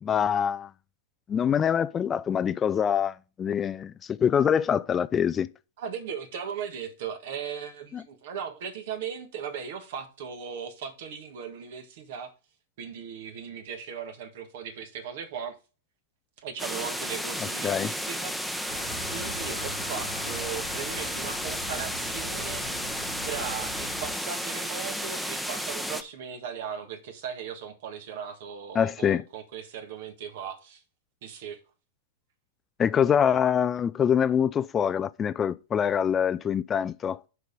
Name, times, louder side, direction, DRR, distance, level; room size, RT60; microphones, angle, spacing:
voice 1, 0.0-0.7 1.3-5.5 7.9-8.0 17.6-17.9 28.7-29.2 32.8-37.2, left 8 dB, 25° left, 0.3 m, -25 dB
voice 2, 5.8-12.3 12.8-15.6 16.4-18.7 19.1-22.6 23.2-30.8 31.2-31.6, right 7 dB, 60° right, 1.5 m, -38 dB
sound 1, 16.6-26.0, equal, 5° right, 0.8 m, -33 dB
sound 2, 18.7-24.2, left 1 dB, 85° left, 1.5 m, -41 dB
6.4 x 4.8 x 5.2 m
hypercardioid pair, 110°, 0 cm